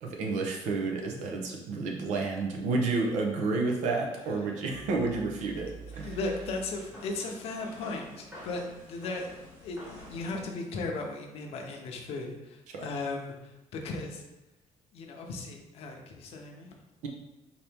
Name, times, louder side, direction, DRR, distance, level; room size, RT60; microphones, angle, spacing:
voice 1, 0.0-5.7 6.0-6.2 12.7-12.9, right 3 dB, 80° right, 1 dB, 0.8 m, -30 dB
sound 1, 4.7-10.4, right 2 dB, 15° right, 1.2 m, -47 dB
voice 2, 6.0-9.3 9.6-14.2 14.9-16.7, left 3 dB, 55° left, 2 dB, 0.6 m, -36 dB
4.3 x 2.9 x 3.4 m, 1.0 s
cardioid pair, 175°, 12 cm